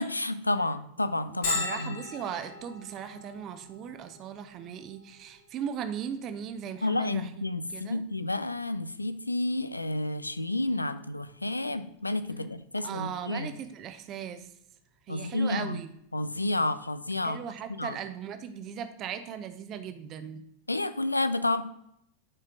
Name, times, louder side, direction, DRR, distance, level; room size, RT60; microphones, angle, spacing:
voice 1, 0.0-2.0 6.8-13.5 15.1-15.8 16.1-17.4 17.8-18.0 20.7-21.6, left 2 dB, 85° left, 13 dB, 0.3 m, -30 dB
voice 2, 1.3-7.3 7.7-8.0 12.8-14.5 15.1-15.9 17.2-20.4, right 8 dB, 35° right, 10 dB, 0.6 m, -38 dB
Bell, 1.4-16.9, left 3 dB, 55° left, 1.6 m, -43 dB
9.7 x 4.4 x 3.7 m, 0.75 s
figure-of-eight pair, 90°, 0 cm